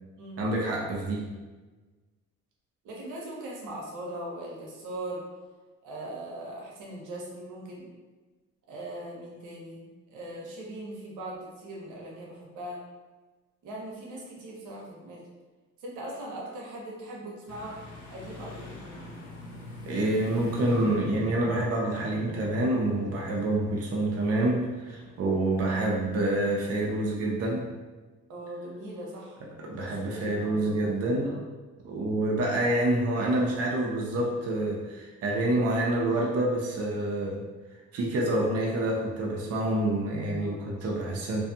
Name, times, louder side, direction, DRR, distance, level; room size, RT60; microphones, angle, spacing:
voice 1, 0.4-1.3 19.9-27.6 29.6-31.3 31.8-37.4 37.9-41.4, right 1 dB, 55° right, -2 dB, 0.5 m, -27 dB
voice 2, 2.8-5.2 5.8-7.9 8.7-12.8 13.6-15.2 15.8-17.8 18.1-19.1 28.3-29.4 29.8-31.4 40.4-40.6, right 1 dB, 85° right, -3 dB, 0.8 m, -40 dB
sound 1, 17.5-27.3, left 2 dB, 65° left, 0.7 m, -44 dB
2.5 x 2.3 x 2.6 m, 1.3 s
cardioid pair, 90°, 30 cm